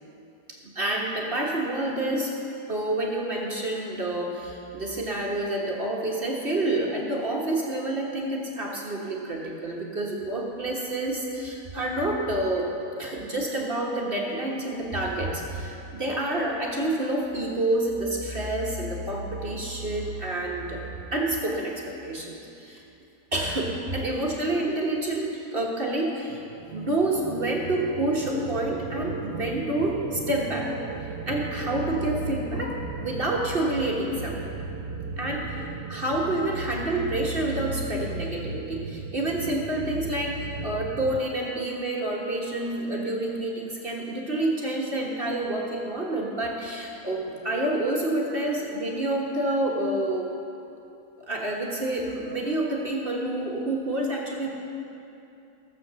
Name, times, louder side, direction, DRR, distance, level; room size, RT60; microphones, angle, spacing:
voice 1, 0.5-2.4 2.7-12.7 13.0-20.8 21.1-22.8 23.3-26.4 26.7-30.7 31.3-34.5 35.2-50.4 51.2-54.5, right 1 dB, 35° right, -2 dB, 1.3 m, -28 dB
sound 1, 26.3-41.2, right 4 dB, 80° right, 1.3 m, -36 dB
15.0 x 7.6 x 6.8 m, 2.8 s
omnidirectional pair, 1.8 m